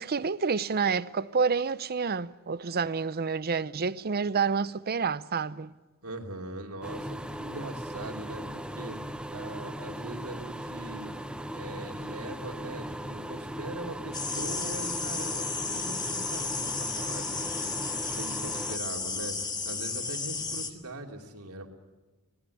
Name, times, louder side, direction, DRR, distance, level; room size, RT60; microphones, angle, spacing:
voice 1, 0.0-5.7, right 5 dB, 45° right, 0.6 m, -28 dB
voice 2, 6.0-11.1 11.5-21.7, right 1 dB, 80° right, 2.9 m, -41 dB
sound 1, 6.8-18.8, right 1 dB, 5° right, 0.9 m, -38 dB
sound 2, 14.1-20.7, left 4 dB, 20° left, 1.7 m, -33 dB
25.0 x 18.5 x 8.5 m
head